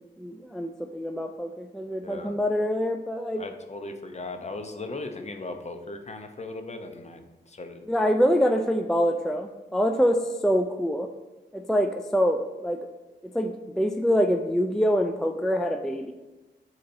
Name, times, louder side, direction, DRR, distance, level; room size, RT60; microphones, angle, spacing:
voice 1, 0.0-3.4 7.9-11.1 11.5-12.8 13.3-16.1, equal, ahead, 5 dB, 0.3 m, -25 dB
voice 2, 2.0-2.3 3.4-7.9, left 2 dB, 35° left, 6 dB, 0.6 m, -38 dB
6.6 x 2.9 x 2.6 m, 1.1 s
cardioid pair, 50°, 20 cm